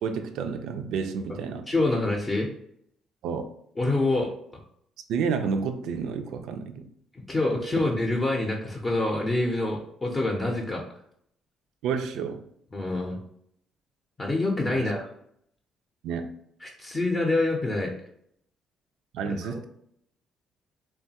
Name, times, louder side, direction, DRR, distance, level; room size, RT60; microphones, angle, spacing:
voice 1, 0.0-1.7 3.2-3.4 5.1-6.9 11.8-12.4 14.7-14.9 16.0-16.3 19.1-19.7, right 6 dB, 80° right, 0.3 m, -30 dB
voice 2, 1.7-2.5 3.8-4.3 7.3-10.8 12.7-13.2 14.2-15.1 16.6-17.9 19.2-19.7, left 2 dB, 25° left, 0.5 m, -26 dB
3.0 x 2.2 x 2.7 m
cardioid pair, 95°, 0 cm